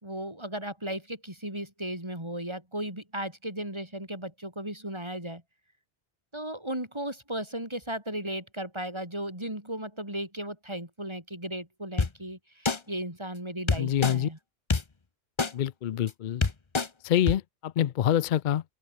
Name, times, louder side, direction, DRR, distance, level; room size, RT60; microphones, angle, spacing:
voice 1, 0.0-5.4 6.3-14.4, right 1 dB, 25° right, 4.7 m, -36 dB
sound 1, 12.0-12.1 12.7-12.8 13.7-14.1 14.7-14.8 15.4-15.5 16.1-16.2 16.4-16.9 17.3-17.4, left 4 dB, 25° left, 0.9 m, -24 dB
voice 2, 13.8-14.3 15.5-16.4 17.0-18.6, left 10 dB, 55° left, 0.6 m, -26 dB
open air
omnidirectional pair, 1.2 m